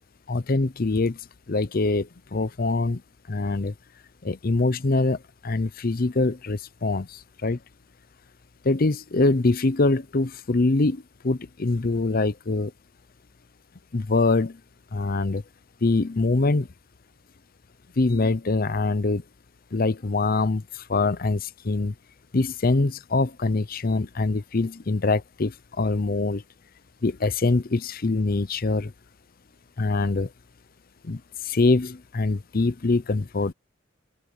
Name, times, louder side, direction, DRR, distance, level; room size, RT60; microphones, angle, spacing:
voice 1, 0.3-1.2 1.5-3.0 3.3-3.7 4.2-7.6 8.6-12.7 13.9-14.6 14.9-15.4 15.8-16.7 18.0-19.2 19.7-21.9 22.3-26.4 27.0-28.9 29.8-30.3 31.0-33.5, left 3 dB, 50° left, 0.7 m, -24 dB
open air
head